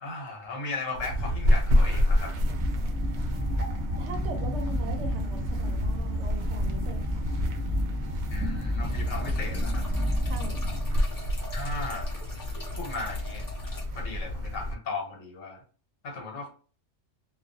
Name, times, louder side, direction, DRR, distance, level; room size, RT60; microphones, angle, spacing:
voice 1, 0.0-2.4 8.3-9.9 11.5-12.1 12.8-13.4 13.9-15.6 16.0-16.5, left 3 dB, 75° left, 1 dB, 1.2 m, -36 dB
sound 1, 0.9-14.7, equal, 90° right, 0.4 m, -29 dB
sound 2, 2.1-11.2, equal, 15° right, 0.8 m, -31 dB
voice 2, 4.0-7.3 10.2-10.6, right 2 dB, 70° right, 4 dB, 0.8 m, -40 dB
sound 3, 8.8-13.8, left 2 dB, 25° left, 0.4 m, -45 dB
2.4 x 2.3 x 2.5 m, 0.38 s
omnidirectional pair, 1.4 m